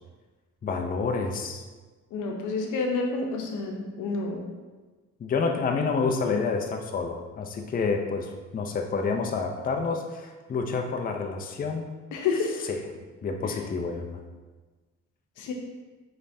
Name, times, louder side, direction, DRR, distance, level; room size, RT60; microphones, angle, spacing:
voice 1, 0.6-1.6 5.2-11.9 12.7-12.8 13.2-14.2, left 4 dB, 30° left, 3 dB, 0.4 m, -28 dB
voice 2, 2.1-4.5 12.1-12.7 13.4-13.6 15.4-15.5, left 4 dB, 80° left, 2 dB, 0.8 m, -29 dB
4.9 x 3.3 x 2.6 m, 1.3 s
cardioid pair, 90°, 30 cm